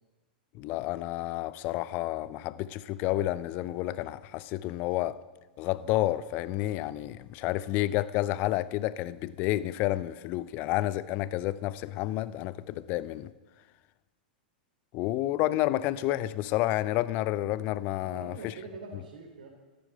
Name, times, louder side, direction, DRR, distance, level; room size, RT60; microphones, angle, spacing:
voice 1, 0.5-5.2 5.6-13.3 14.9-18.5, left 15 dB, 40° left, 0.7 m, -30 dB
voice 2, 18.0-19.5, right 4 dB, 60° right, 3.3 m, -44 dB
14.0 x 12.0 x 7.8 m
figure-of-eight pair, 95°, 5 cm